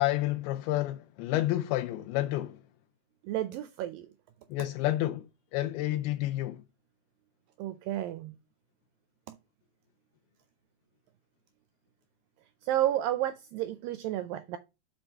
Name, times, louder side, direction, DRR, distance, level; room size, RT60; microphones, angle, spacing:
voice 1, 0.0-2.6 4.5-5.3 5.5-6.6, left 15 dB, 85° left, 2.5 m, -29 dB
voice 2, 3.2-4.1 7.6-8.3 9.3-9.4 12.6-14.6, right 13 dB, 80° right, 2.1 m, -31 dB
6.3 x 5.7 x 4.4 m
omnidirectional pair, 4.4 m